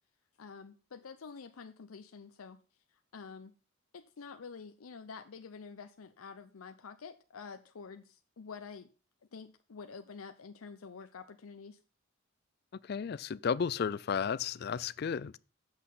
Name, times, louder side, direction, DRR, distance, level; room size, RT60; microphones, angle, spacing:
voice 1, 0.4-2.6 3.1-3.5 3.9-8.9 9.3-11.8, left 5 dB, 90° left, 0.6 m, -48 dB
voice 2, 12.8-15.4, left 6 dB, 50° left, 0.3 m, -33 dB
7.9 x 6.5 x 5.5 m
head